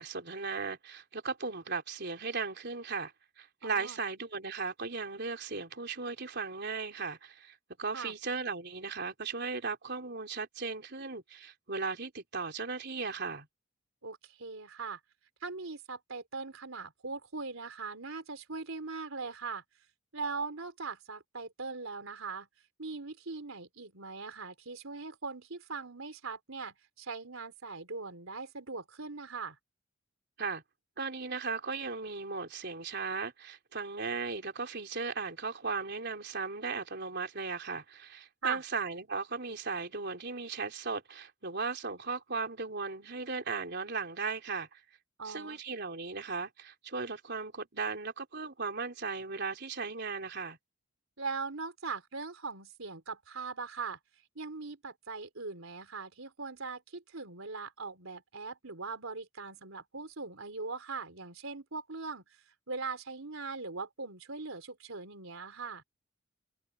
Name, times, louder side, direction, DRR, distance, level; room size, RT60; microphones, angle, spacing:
voice 1, 0.0-3.1 3.4-13.5 30.4-30.6 31.0-44.8 45.2-50.6, right 4 dB, 55° right, 3.9 m, -37 dB
voice 2, 3.6-4.0 7.9-8.1 14.0-15.0 15.4-19.6 20.1-22.5 22.8-29.6 38.4-38.6 45.2-45.6 51.2-54.0 54.4-62.2 62.7-65.8, right 4 dB, 85° right, 3.6 m, -40 dB
head